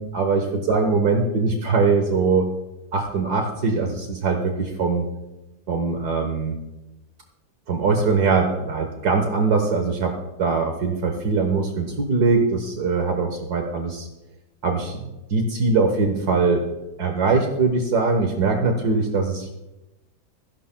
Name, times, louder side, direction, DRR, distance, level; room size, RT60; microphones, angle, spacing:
voice 1, 0.0-2.5 2.9-5.1 5.7-6.5 7.7-10.1 10.4-14.1 14.6-16.6 17.0-19.5, right 4 dB, 75° right, 3 dB, 1.7 m, -22 dB
26.0 x 11.5 x 2.2 m, 0.99 s
omnidirectional pair, 1.7 m